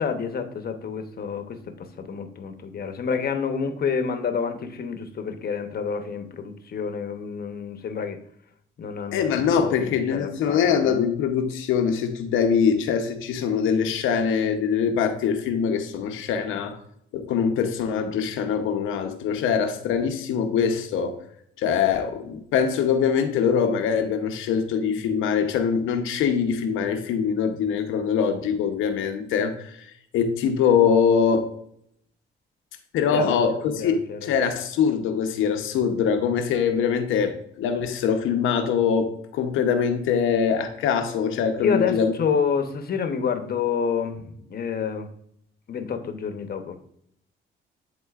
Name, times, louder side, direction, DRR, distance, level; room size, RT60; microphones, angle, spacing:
voice 1, 0.0-8.2 8.8-11.0 33.1-34.3 41.6-45.1 45.7-46.8, left 6 dB, 50° left, 7 dB, 0.9 m, -28 dB
voice 2, 9.1-16.8 17.1-21.2 21.6-31.5 32.9-42.1, left 7 dB, 90° left, 6 dB, 0.9 m, -23 dB
11.0 x 3.7 x 2.4 m, 0.70 s
cardioid pair, 90°, 20 cm